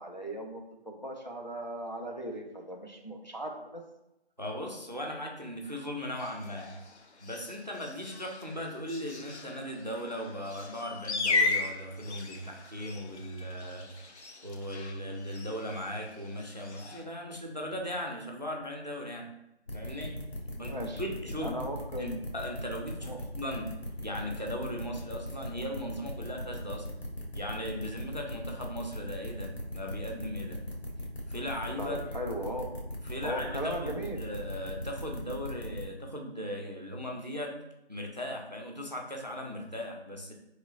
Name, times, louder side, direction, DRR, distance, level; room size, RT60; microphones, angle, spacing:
voice 1, 0.0-3.8 20.6-21.1 21.4-22.2 23.0-23.2 31.8-32.7 33.2-34.2, right 1 dB, 45° left, 1 dB, 0.4 m, -37 dB
voice 2, 4.4-6.7 7.2-19.3 19.7-20.2 20.6-21.6 22.0-23.7 24.0-26.9 27.3-30.6 31.3-32.0 33.0-37.6 37.9-40.3, equal, 45° right, 1 dB, 0.4 m, -38 dB
sound 1, 6.1-17.0, left 3 dB, 85° left, 0.6 m, -37 dB
sound 2, 19.7-35.8, left 1 dB, 70° left, 1.1 m, -39 dB
3.8 x 3.1 x 2.4 m, 0.87 s
figure-of-eight pair, 180°, 33 cm